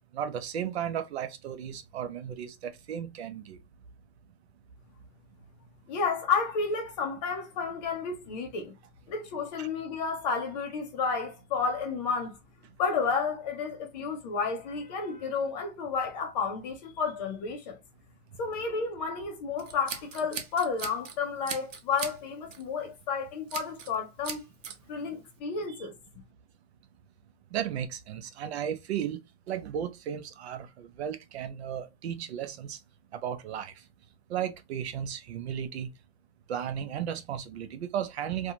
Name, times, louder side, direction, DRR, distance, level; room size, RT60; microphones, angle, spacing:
voice 1, 0.1-3.6 9.6-9.7 27.5-29.2 29.5-32.8 33.1-33.7 34.3-35.9 36.5-38.5, right 9 dB, 60° right, 0.5 m, -34 dB
voice 2, 5.9-8.7 9.1-12.4 12.8-17.8 18.4-24.5 24.9-25.9, left 5 dB, 35° left, 0.7 m, -31 dB
Scissors, 19.6-21.2 21.5-22.2 22.5-22.7 23.5-24.0 24.2-24.8, right 6 dB, 90° right, 0.8 m, -38 dB
2.5 x 2.4 x 2.8 m
hypercardioid pair, 150°, 37 cm